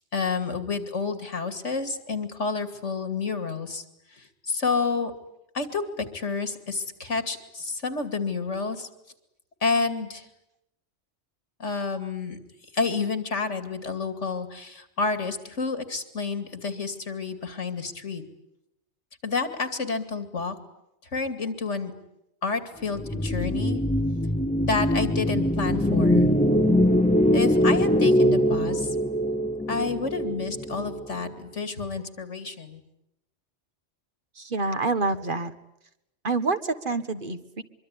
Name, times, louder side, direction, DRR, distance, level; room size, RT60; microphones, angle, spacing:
voice 1, 0.1-3.8 4.5-5.1 5.5-8.9 9.6-10.3 11.6-12.4 12.7-18.2 19.2-20.5 21.1-21.9 22.4-23.8 24.6-26.3 27.3-29.0 29.7-32.8, left 4 dB, 80° left, 10 dB, 2.8 m, -29 dB
sound 1, 22.9-31.3, equal, 5° left, 0.9 m, -23 dB
voice 2, 34.4-35.5 36.2-37.6, right 3 dB, 45° right, 10 dB, 1.5 m, -27 dB
24.5 x 24.0 x 9.9 m, 0.83 s
omnidirectional pair, 1.2 m